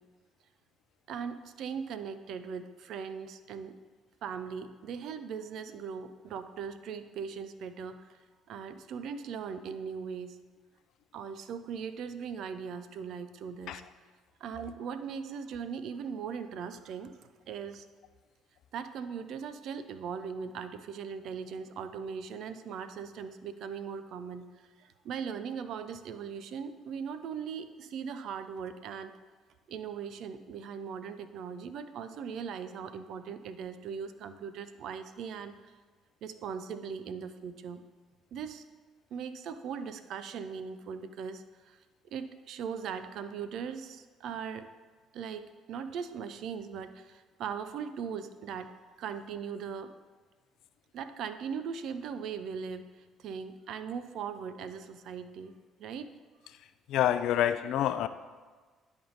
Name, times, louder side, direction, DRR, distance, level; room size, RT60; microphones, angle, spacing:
voice 1, 1.1-3.7 4.2-8.2 8.5-10.4 11.1-13.8 14.4-17.9 18.7-29.1 29.7-35.7 36.2-37.8 38.3-38.6 39.1-41.8 42.0-44.7 45.1-48.7 49.0-49.9 50.9-55.5 55.8-56.1, right 6 dB, 65° right, 11 dB, 0.4 m, -39 dB
voice 2, 56.5-58.1, left 11 dB, 70° left, 12 dB, 0.3 m, -28 dB
10.0 x 3.5 x 3.9 m, 1.4 s
hypercardioid pair, 55°, 0 cm